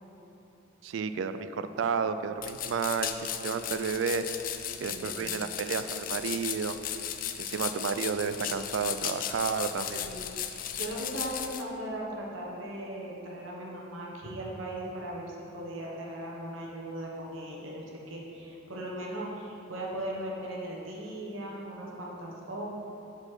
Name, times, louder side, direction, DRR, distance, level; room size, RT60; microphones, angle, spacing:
voice 1, 0.8-4.2 4.8-6.8 7.4-10.1, right 6 dB, 75° right, 11 dB, 0.3 m, -31 dB
sound 1, 2.4-11.6, left 10 dB, 45° left, 0.4 m, -36 dB
voice 2, 4.9-5.4 7.5-7.6 9.7-22.7, right 1 dB, 90° right, -3 dB, 1.1 m, -38 dB
7.9 x 4.2 x 5.7 m, 3.0 s
head